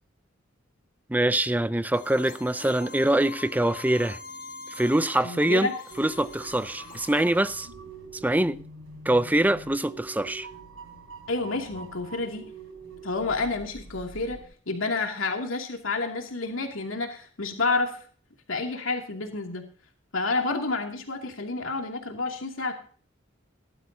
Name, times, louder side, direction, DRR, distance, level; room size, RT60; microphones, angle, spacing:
voice 1, 1.1-4.2 4.7-5.7 6.0-7.7 8.2-8.6 9.1-10.5, right 1 dB, 10° right, 0.5 m, -24 dB
sound 1, 1.9-7.4, left 5 dB, 45° left, 1.7 m, -44 dB
voice 2, 5.2-5.7 11.3-12.5 13.0-18.0 18.5-19.6 20.1-22.7, left 3 dB, 90° left, 2.6 m, -29 dB
sound 2, 5.9-14.5, right 3 dB, 80° right, 5.3 m, -45 dB
18.5 x 12.5 x 2.8 m
head